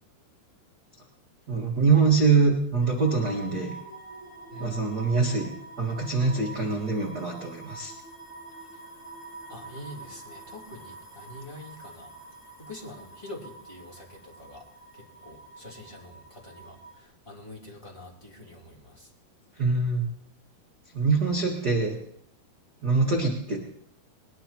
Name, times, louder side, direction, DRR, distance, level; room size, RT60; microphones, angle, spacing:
voice 1, 1.5-3.7 4.6-7.9 19.6-20.0 20.9-21.9 22.8-23.6, right 4 dB, 45° right, -1 dB, 1.3 m, -24 dB
sound 1, 2.8-17.0, right 3 dB, 30° left, 1.1 m, -46 dB
voice 2, 4.5-5.0 8.7-8.8 9.5-12.1 12.6-14.7 14.9-19.1, left 1 dB, 10° left, -3 dB, 2.5 m, -45 dB
21.0 x 19.5 x 3.0 m, 0.70 s
omnidirectional pair, 4.7 m